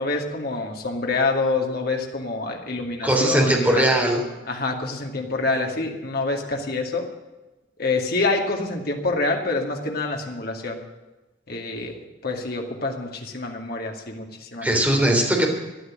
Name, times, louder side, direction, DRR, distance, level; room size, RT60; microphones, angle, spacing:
voice 1, 0.0-3.9 4.5-7.1 7.8-10.8 11.5-12.0 12.2-14.7, left 3 dB, 55° left, 1 dB, 2.4 m, -26 dB
voice 2, 3.0-4.3 14.6-15.5, right 1 dB, 10° right, 0 dB, 3.4 m, -19 dB
14.5 x 11.0 x 7.6 m, 1.1 s
head